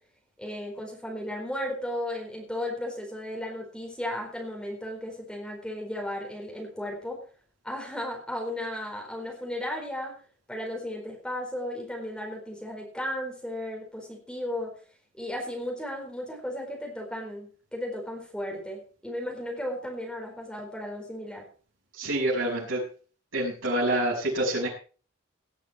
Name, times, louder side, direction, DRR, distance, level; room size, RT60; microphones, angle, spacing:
voice 1, 0.4-7.2 7.6-10.2 10.5-14.7 15.2-21.5, left 1 dB, 5° left, 0 dB, 4.4 m, -35 dB
voice 2, 21.9-22.8 23.3-24.7, right 1 dB, 75° right, -5 dB, 6.1 m, -27 dB
18.0 x 9.8 x 4.5 m, 0.38 s
head